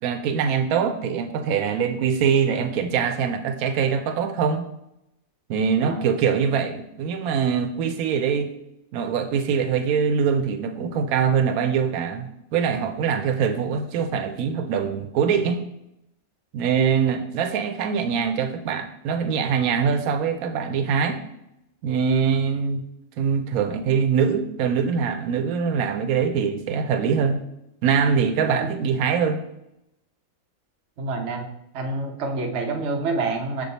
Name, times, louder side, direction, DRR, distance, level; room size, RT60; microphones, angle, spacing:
voice 1, 0.0-4.7 5.5-8.5 8.9-15.6 16.5-21.2 21.8-22.8 23.2-27.4 27.8-29.4, right 6 dB, 90° right, 7 dB, 1.0 m, -23 dB
voice 2, 31.0-31.5 31.7-33.6, right 3 dB, 55° right, 3 dB, 1.1 m, -27 dB
6.7 x 3.6 x 3.9 m, 0.83 s
omnidirectional pair, 1.5 m